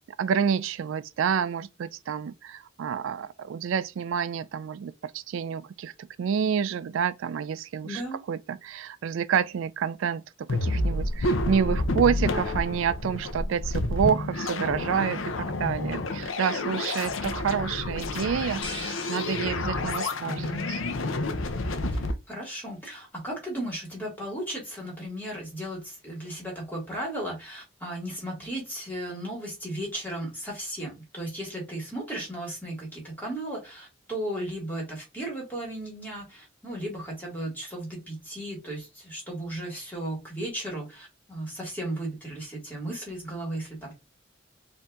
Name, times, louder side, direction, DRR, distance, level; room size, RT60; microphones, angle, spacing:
voice 1, 0.2-5.9 6.2-8.0 8.3-20.9, right 7 dB, 75° right, 0.3 m, -28 dB
voice 2, 7.8-8.2 21.9-43.9, right 1 dB, 10° left, 2.1 m, -35 dB
sound 1, 10.5-22.1, left 2 dB, 75° left, 0.6 m, -29 dB
sound 2, 18.6-20.3, left 2 dB, 25° left, 1.2 m, -41 dB
4.4 x 2.7 x 3.6 m
head